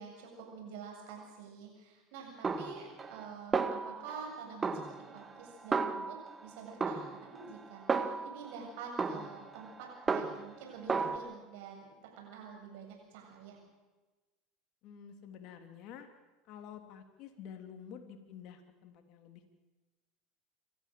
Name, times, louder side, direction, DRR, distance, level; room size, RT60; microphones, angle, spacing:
voice 1, 0.0-13.6, right 5 dB, 70° right, 1 dB, 7.6 m, -48 dB
Snare drum, 2.4-3.3 3.5-4.3 4.6-6.4 6.8-8.5 9.0-10.6 10.9-11.2, right 4 dB, 25° right, 1.7 m, -34 dB
voice 2, 14.8-16.1 16.5-19.5, left 8 dB, 55° left, 6 dB, 3.2 m, -49 dB
27.5 x 13.5 x 7.7 m, 1.2 s
hypercardioid pair, 85°, 0 cm